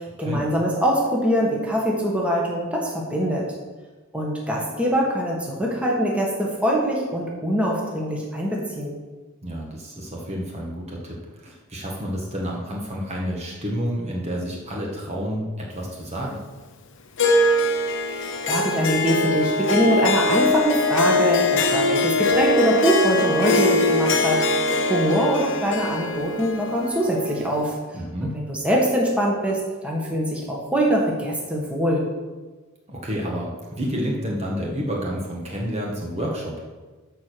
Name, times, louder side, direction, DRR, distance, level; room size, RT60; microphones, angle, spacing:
voice 1, 0.0-3.4 4.1-9.0 18.1-27.8 28.2-32.0, equal, 5° right, -3 dB, 1.6 m, -23 dB
voice 2, 9.4-16.4 27.9-28.3 32.9-36.7, equal, 30° right, -3 dB, 1.5 m, -29 dB
Harp, 17.2-27.8, left 2 dB, 60° left, 0.9 m, -22 dB
11.0 x 4.6 x 6.8 m, 1.3 s
head